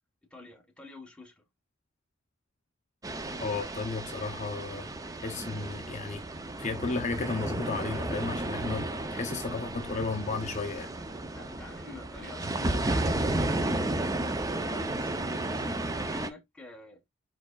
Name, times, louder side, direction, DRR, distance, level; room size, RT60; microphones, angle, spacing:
voice 1, 0.3-1.4 8.8-9.6 11.3-13.2 13.5-15.7 16.1-17.0, left 3 dB, 5° left, 1.0 m, -49 dB
sound 1, 3.0-16.3, right 2 dB, 15° right, 0.4 m, -33 dB
voice 2, 3.4-4.9 5.2-6.2 6.6-10.9, left 4 dB, 35° left, 0.5 m, -34 dB
4.7 x 4.6 x 2.2 m
head